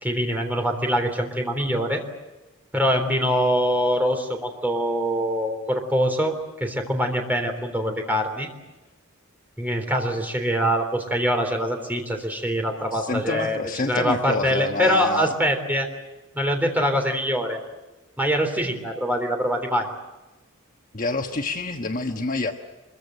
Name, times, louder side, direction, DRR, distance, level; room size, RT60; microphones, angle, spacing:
voice 1, 0.0-2.0 2.7-6.3 6.6-8.5 9.6-13.6 13.9-15.9 16.3-17.6 18.2-19.9, equal, 10° right, 3 dB, 3.6 m, -24 dB
voice 2, 12.9-15.3 20.9-22.5, left 3 dB, 40° left, 4 dB, 1.3 m, -27 dB
25.0 x 23.0 x 7.8 m, 1.1 s
head